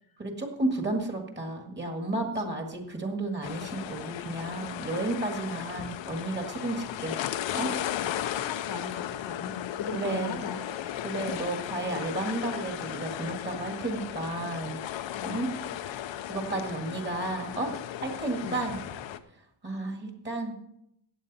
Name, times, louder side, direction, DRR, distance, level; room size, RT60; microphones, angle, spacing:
voice 1, 0.2-7.2 7.5-7.7 9.9-10.4 11.0-14.8 15.2-15.5 16.3-17.7 18.0-18.8 19.6-20.6, right 2 dB, 20° right, 3 dB, 1.8 m, -32 dB
sound 1, 3.4-19.2, left 11 dB, 65° left, 0.7 m, -36 dB
voice 2, 8.0-11.3 15.1-15.4 18.4-18.6, left 5 dB, 45° left, 7 dB, 1.1 m, -40 dB
15.0 x 8.8 x 4.1 m, 0.75 s
wide cardioid pair, 170°, 49 cm